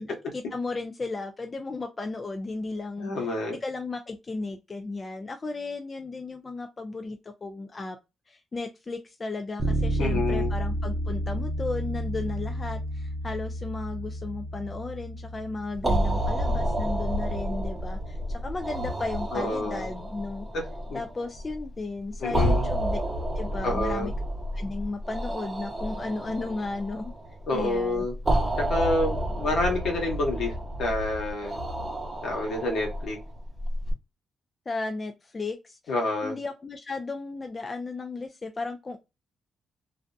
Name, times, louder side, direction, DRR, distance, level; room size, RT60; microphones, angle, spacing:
voice 1, 0.0-3.3 3.6-8.0 8.3-20.5 20.9-23.0 23.4-24.1 24.5-27.1 27.5-28.1 34.7-35.8 36.2-39.0, left 3 dB, 35° left, 0.4 m, -34 dB
voice 2, 3.0-3.5 10.0-10.5 19.3-19.9 20.9-21.0 22.2-22.7 23.6-24.1 27.5-28.1 28.7-30.5 30.8-31.6 32.2-33.2 35.9-36.4, left 2 dB, 75° left, 1.2 m, -28 dB
Bass guitar, 9.6-19.4, right 1 dB, 60° right, 0.5 m, -32 dB
sound 1, 15.7-33.9, right 1 dB, 20° right, 0.7 m, -30 dB
2.6 x 2.1 x 2.5 m
cardioid pair, 70°, 0 cm